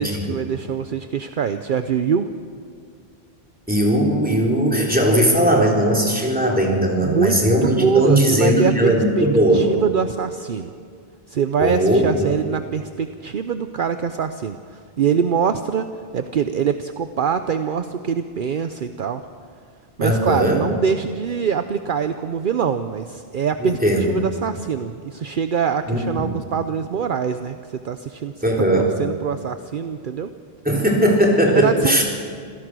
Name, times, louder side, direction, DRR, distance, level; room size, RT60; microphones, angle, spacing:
voice 1, 0.0-2.3 7.0-9.3 9.5-10.7 11.3-15.9 16.1-19.2 20.0-23.8 24.1-28.3 28.7-30.3 31.5-32.0, right 7 dB, 60° right, 9 dB, 0.8 m, -24 dB
voice 2, 3.7-9.7 11.6-12.3 20.0-20.6 23.6-24.1 25.9-26.4 28.4-28.9 30.6-32.0, right 1 dB, 10° right, -1 dB, 3.7 m, -18 dB
26.5 x 16.5 x 6.2 m, 2.2 s
omnidirectional pair, 1.0 m